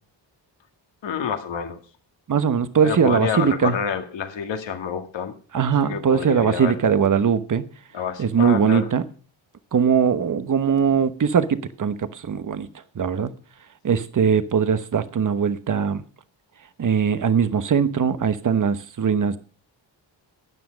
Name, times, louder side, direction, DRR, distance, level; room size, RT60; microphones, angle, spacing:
voice 1, 1.0-1.8 2.8-5.3 5.8-6.8 7.9-8.9, left 7 dB, 75° left, 2.1 m, -28 dB
voice 2, 2.3-3.8 5.5-7.7 8.2-9.0 9.7-12.7 13.0-13.3 13.8-16.0 16.8-19.4, right 7 dB, 45° right, 1.1 m, -20 dB
12.5 x 9.5 x 5.2 m
cardioid pair, 100°, 45 cm